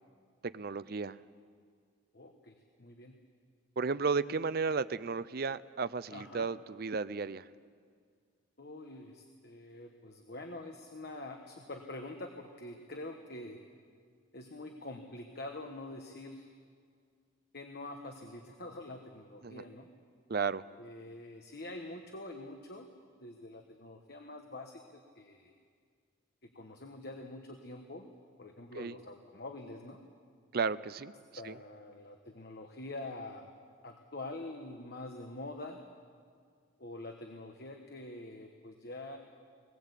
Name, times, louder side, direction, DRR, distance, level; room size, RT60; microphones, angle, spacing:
voice 1, 0.4-1.2 3.8-7.4 19.4-19.6 20.3-20.6 28.7-29.0 30.5-31.1 31.4-31.6, right 5 dB, 50° right, 15 dB, 0.5 m, -33 dB
voice 2, 2.1-3.1 6.1-6.5 8.6-13.6 14.3-16.5 17.5-19.9 20.8-22.9 23.1-25.5 26.5-28.1 28.4-30.0 31.4-33.5 33.8-35.8 36.8-39.2, left 2 dB, 50° left, 4 dB, 1.3 m, -45 dB
20.5 x 20.5 x 8.3 m, 2.1 s
head